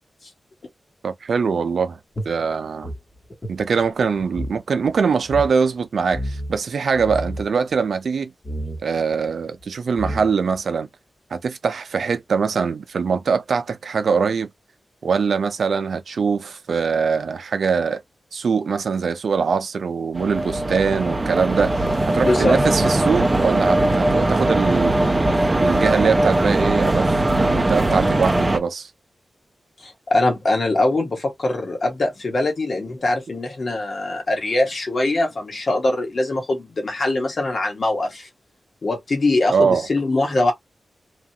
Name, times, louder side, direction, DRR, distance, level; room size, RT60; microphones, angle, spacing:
voice 1, 1.0-2.0 2.3-2.9 3.5-8.3 8.8-10.9 11.3-14.5 15.0-18.0 18.3-25.0 25.6-28.9 39.5-39.9, right 5 dB, 75° right, 0.5 m, -22 dB
sound 1, 2.1-4.6 4.9-5.0 5.2-5.5 6.1-6.6 6.9-7.5 8.4-8.8 9.6-9.7 10.0-10.6, equal, 25° left, 1.1 m, -30 dB
sound 2, 20.1-28.6, right 1 dB, 20° right, 0.5 m, -20 dB
voice 2, 22.1-22.6 29.8-38.3 38.8-40.5, left 2 dB, 55° left, 1.3 m, -22 dB
3.0 x 2.4 x 2.8 m
wide cardioid pair, 90°, 0 cm